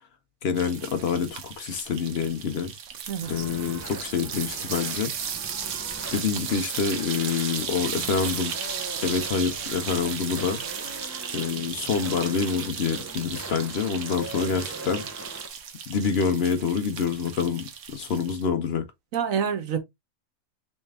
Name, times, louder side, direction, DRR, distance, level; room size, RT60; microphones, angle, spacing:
voice 1, 0.4-2.7 3.3-5.1 6.1-8.5 9.0-10.6 11.3-15.0 15.9-18.8, left 6 dB, 60° left, 0.8 m, -27 dB
sound 1, 0.6-18.4, right 7 dB, 70° right, 1.1 m, -35 dB
voice 2, 3.1-3.4 19.1-19.8, right 7 dB, 90° right, 1.3 m, -27 dB
sound 2, 3.2-15.5, right 2 dB, 20° right, 0.4 m, -41 dB
3.2 x 3.1 x 3.4 m
omnidirectional pair, 1.4 m